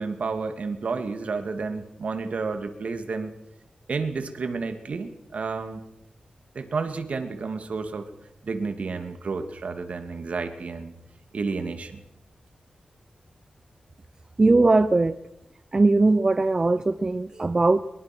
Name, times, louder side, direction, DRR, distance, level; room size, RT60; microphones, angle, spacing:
voice 1, 0.0-3.3 3.9-5.8 6.5-8.1 8.4-10.9 11.3-12.0, right 4 dB, 60° right, 7 dB, 2.5 m, -31 dB
voice 2, 14.4-15.2 15.7-17.8, right 3 dB, 30° right, 12 dB, 0.8 m, -20 dB
23.0 x 22.5 x 6.2 m, 0.85 s
wide cardioid pair, 120°, 3 cm